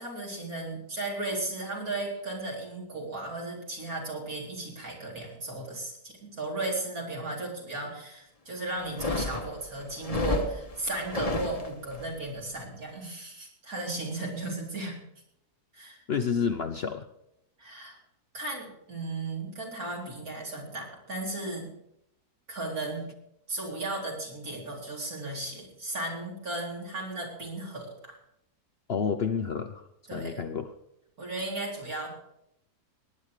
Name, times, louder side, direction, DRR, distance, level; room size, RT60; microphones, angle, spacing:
voice 1, 0.0-15.0 15.7-16.0 17.6-18.0 18.3-21.7 22.5-23.0 23.5-28.2 30.1-30.5 31.2-32.1, right 2 dB, 65° right, -2 dB, 4.6 m, -35 dB
sound 1, 8.8-12.1, left 3 dB, 25° left, 1.1 m, -32 dB
voice 2, 16.1-17.1 28.9-29.8 30.1-30.7, left 6 dB, 50° left, 8 dB, 0.9 m, -29 dB
19.0 x 9.8 x 4.9 m, 0.79 s
omnidirectional pair, 1.7 m